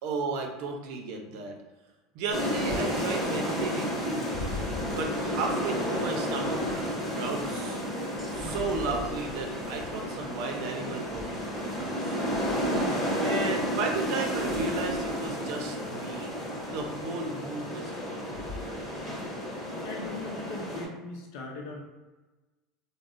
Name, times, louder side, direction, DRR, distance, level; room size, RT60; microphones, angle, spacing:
voice 1, 0.0-1.5 2.1-4.4 4.9-7.9 8.3-12.2 13.2-16.3 16.7-18.3, right 3 dB, 65° right, 2 dB, 0.6 m, -34 dB
sound 1, 2.3-20.8, equal, 25° left, 1.3 m, -32 dB
sound 2, 8.2-11.9, equal, 5° right, 0.8 m, -45 dB
voice 2, 19.5-21.8, left 3 dB, 70° left, -1 dB, 0.6 m, -39 dB
3.4 x 2.1 x 2.5 m, 1.2 s
supercardioid pair, 130°, 0 cm